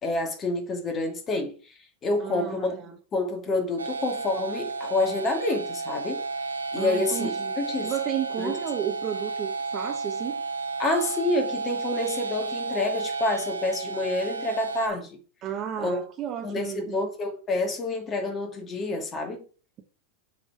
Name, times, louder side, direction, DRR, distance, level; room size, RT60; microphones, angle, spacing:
voice 1, 0.0-1.7 2.0-2.8 3.1-6.2 6.7-7.9 8.4-8.6 10.8-15.2 15.8-16.0 16.4-19.4, left 2 dB, 30° left, 2.4 m, -28 dB
voice 2, 2.2-2.9 6.7-7.5 7.8-10.4 15.4-17.0, right 10 dB, 35° right, 1.5 m, -33 dB
sound 1, 3.8-14.9, right 4 dB, 85° right, 0.8 m, -32 dB
7.3 x 4.3 x 4.8 m
hypercardioid pair, 95°, 0 cm